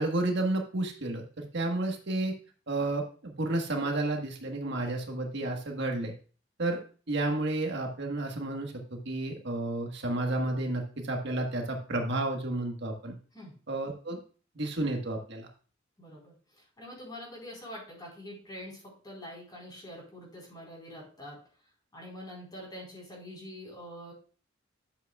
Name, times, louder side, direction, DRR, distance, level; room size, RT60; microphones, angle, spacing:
voice 1, 0.0-2.3 2.7-6.1 6.6-6.8 7.1-13.1 13.7-14.2 14.6-15.5, right 2 dB, 65° right, 2 dB, 1.4 m, -31 dB
voice 2, 16.0-16.4 16.8-21.4 21.9-24.1, left 1 dB, 20° left, -3 dB, 4.2 m, -45 dB
11.0 x 7.9 x 2.3 m, 0.40 s
head